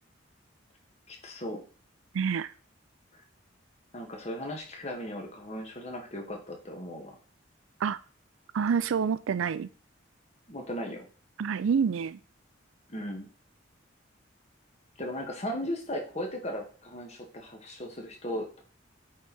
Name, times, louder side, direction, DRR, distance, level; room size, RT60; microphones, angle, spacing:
voice 1, 1.1-1.6 3.9-7.2 10.5-11.1 12.9-13.3 15.0-18.6, equal, 35° left, 1.8 m, -37 dB
voice 2, 2.1-2.5 7.8-8.0 8.5-9.7 11.4-12.2, right 6 dB, 90° right, 0.4 m, -27 dB
8.3 x 4.6 x 4.2 m
head